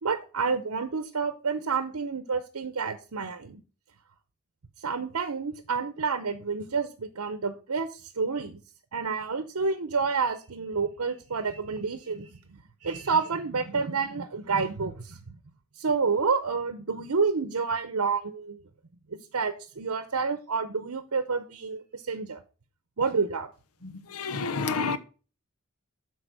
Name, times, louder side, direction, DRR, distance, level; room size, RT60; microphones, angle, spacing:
voice 1, 0.0-3.6 4.8-8.6 8.9-15.2 15.8-18.6 19.3-22.4 23.0-23.5, right 5 dB, 80° right, 0.8 m, -29 dB
voice 2, 23.8-25.0, left 4 dB, 85° left, 0.8 m, -30 dB
8.0 x 4.8 x 6.1 m
head